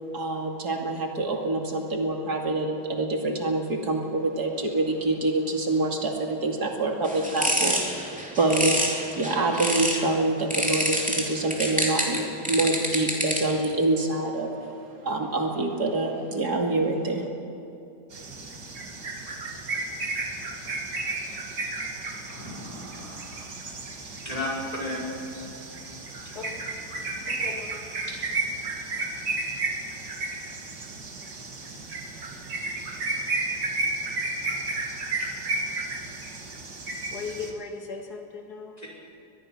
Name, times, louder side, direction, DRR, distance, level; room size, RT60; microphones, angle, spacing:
voice 1, 0.1-14.8 15.0-17.3, right 2 dB, 75° right, 1 dB, 2.9 m, -26 dB
sound 1, 7.0-10.1 10.5-13.7, equal, 5° right, 2.8 m, -27 dB
sound 2, 18.1-37.5, right 3 dB, 90° right, 2.7 m, -33 dB
voice 2, 22.3-23.5 24.2-25.0 27.0-27.2 28.1-28.3, left 1 dB, 25° left, -4 dB, 5.8 m, -34 dB
voice 3, 26.2-26.8 27.2-28.0 37.1-38.8, left 4 dB, 75° left, 3 dB, 2.5 m, -38 dB
23.5 x 20.5 x 6.1 m, 2.7 s
omnidirectional pair, 1.7 m